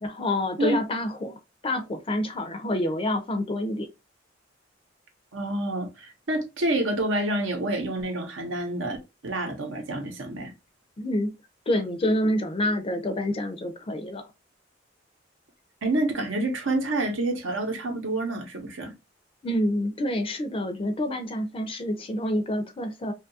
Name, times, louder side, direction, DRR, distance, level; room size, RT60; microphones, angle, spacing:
voice 1, 0.0-3.9 11.0-11.3 11.7-14.2 19.4-23.1, left 1 dB, 30° left, 0.4 m, -27 dB
voice 2, 5.3-10.5 15.8-18.9, right 2 dB, 75° right, 0.8 m, -28 dB
2.7 x 2.3 x 2.6 m
head